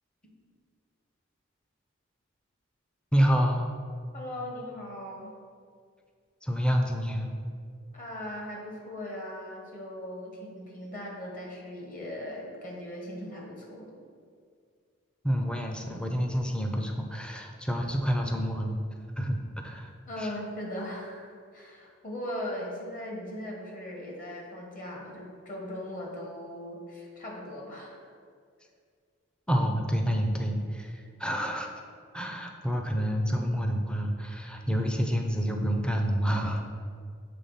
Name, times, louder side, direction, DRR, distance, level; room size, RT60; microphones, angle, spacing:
voice 1, 3.1-3.7 6.4-7.3 15.2-18.8 19.2-19.4 19.6-19.9 20.2-20.3 29.5-31.7 32.1-36.6, equal, 5° left, 2 dB, 0.5 m, -28 dB
voice 2, 4.1-5.3 7.9-13.9 20.1-28.1, left 1 dB, 40° left, -1 dB, 1.4 m, -39 dB
6.8 x 3.4 x 5.6 m, 2.1 s
head